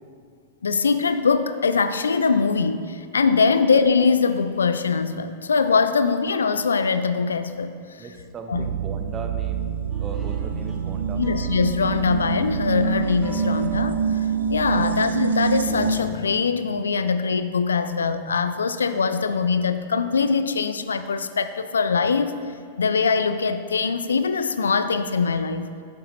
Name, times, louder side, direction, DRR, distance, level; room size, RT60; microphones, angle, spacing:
voice 1, 0.6-7.7 8.5-8.7 11.2-14.2 14.5-22.3 22.8-25.7, left 5 dB, 75° left, 0.4 m, -22 dB
voice 2, 8.0-9.7 10.0-11.2 14.7-14.9, right 5 dB, 25° right, 0.7 m, -38 dB
sound 1, 8.5-16.0, right 7 dB, 75° right, 0.5 m, -26 dB
sound 2, 9.9-14.9 15.4-16.3, left 1 dB, 10° right, 1.6 m, -38 dB
11.0 x 6.9 x 3.1 m
figure-of-eight pair, 95°, 0 cm